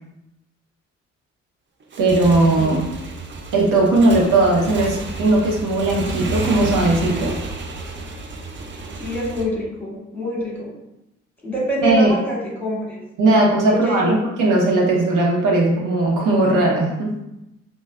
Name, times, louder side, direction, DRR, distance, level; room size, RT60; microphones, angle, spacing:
Motorcycle / Engine, 1.8-9.4, right 3 dB, 30° right, 0.6 m, -30 dB
voice 1, 2.0-2.8 3.5-7.4 11.8-12.1 13.2-17.1, right 2 dB, 55° right, -2 dB, 1.1 m, -18 dB
voice 2, 8.9-10.7 11.4-13.0 13.7-14.1 14.4-14.5, equal, 5° left, -3 dB, 1.5 m, -26 dB
5.1 x 2.2 x 2.4 m, 0.90 s
hypercardioid pair, 45°, 37 cm